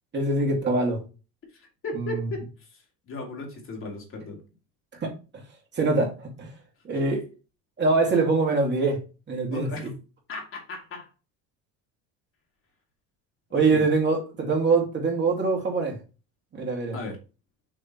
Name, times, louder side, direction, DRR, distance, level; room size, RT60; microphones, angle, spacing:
voice 1, 0.1-1.0 5.0-5.4 5.8-6.5 6.8-7.2 7.8-9.0 9.3-9.9 13.5-16.0 16.5-17.0, right 3 dB, 30° right, 2.3 m, -24 dB
voice 2, 1.5-2.5 2.7-4.4 6.9-7.0 9.5-9.9 10.3-11.1 13.5-13.9 16.9-17.2, left 2 dB, 35° left, 2.5 m, -36 dB
6.7 x 3.7 x 4.5 m
cardioid pair, 125°, 35 cm